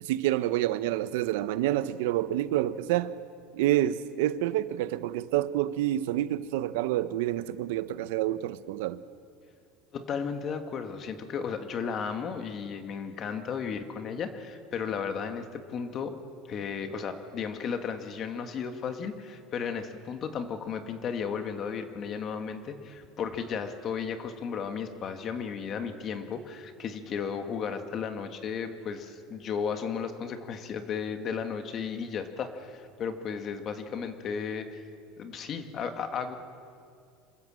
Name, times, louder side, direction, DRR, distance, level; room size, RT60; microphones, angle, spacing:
voice 1, 0.0-3.1 3.5-9.0, right 13 dB, 85° right, 0.8 m, -28 dB
voice 2, 9.9-16.2 16.5-34.8 35.2-36.4, left 6 dB, 40° left, 1.8 m, -34 dB
27.0 x 15.0 x 7.6 m
cardioid pair, 135°, 0 cm